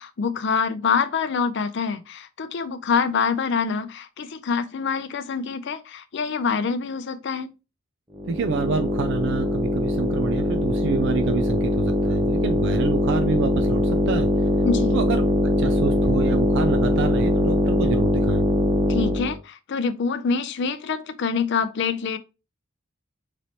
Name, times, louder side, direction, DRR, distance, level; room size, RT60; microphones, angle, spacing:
voice 1, 0.0-7.5 14.6-15.0 18.9-22.2, left 5 dB, 55° left, 0.4 m, -25 dB
sound 1, 8.1-19.4, equal, 20° right, 0.7 m, -22 dB
voice 2, 8.3-14.5 14.9-15.2 15.6-18.4, right 5 dB, 60° right, 0.3 m, -27 dB
4.0 x 3.2 x 2.8 m
head